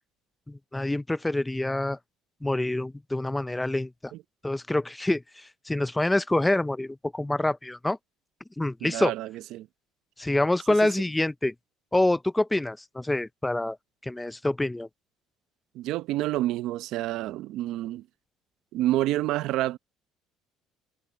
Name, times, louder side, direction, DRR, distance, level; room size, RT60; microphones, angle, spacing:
voice 1, 0.5-2.0 2.4-4.1 4.4-8.0 8.6-9.1 10.2-11.5 11.9-13.8 14.0-14.9, left 1 dB, 10° left, 0.6 m, -26 dB
voice 2, 8.8-9.7 10.7-10.9 15.7-18.0 18.7-19.8, right 15 dB, 70° right, 0.9 m, -28 dB
supercardioid pair, 90°, 0 cm